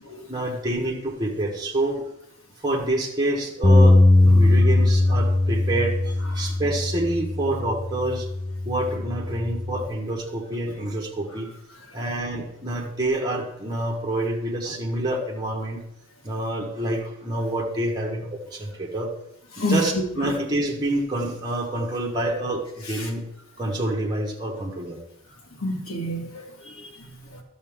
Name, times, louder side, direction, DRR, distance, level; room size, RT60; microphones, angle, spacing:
voice 1, 0.3-2.0 2.6-8.3 8.6-11.5 11.9-15.8 16.2-19.1 19.7-23.3 23.6-25.0, right 1 dB, 20° right, 1.4 m, -27 dB
Bass guitar, 3.6-9.9, left 2 dB, 20° left, 0.4 m, -20 dB
voice 2, 25.6-27.4, left 1 dB, 90° left, 1.8 m, -29 dB
12.0 x 7.1 x 3.6 m
head